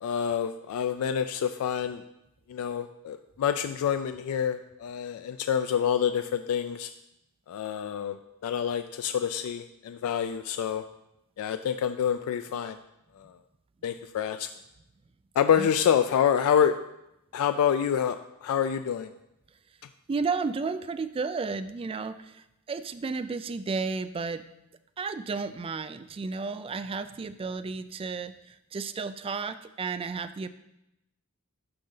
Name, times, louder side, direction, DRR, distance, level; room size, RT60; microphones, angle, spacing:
voice 1, 0.0-2.0 2.5-6.9 7.5-10.8 11.4-12.8 13.2-13.3 13.8-14.5 15.4-16.7 17.3-18.2 18.4-19.1, left 8 dB, 70° left, 11 dB, 0.3 m, -27 dB
voice 2, 20.1-24.4 25.0-30.5, right 4 dB, 25° right, 11 dB, 0.3 m, -33 dB
11.5 x 3.9 x 3.9 m, 0.87 s
head